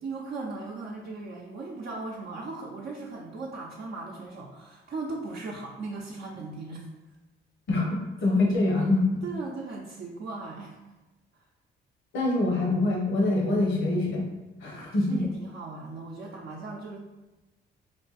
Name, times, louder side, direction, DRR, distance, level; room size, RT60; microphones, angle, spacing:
voice 1, 0.0-6.9 9.2-10.8 14.9-17.0, right 3 dB, 50° right, -3 dB, 0.6 m, -38 dB
voice 2, 7.7-9.1 12.1-14.2 14.6-15.2, left 2 dB, 75° left, -1 dB, 1.1 m, -25 dB
4.5 x 2.3 x 4.1 m, 1.1 s
cardioid pair, 90°, 20 cm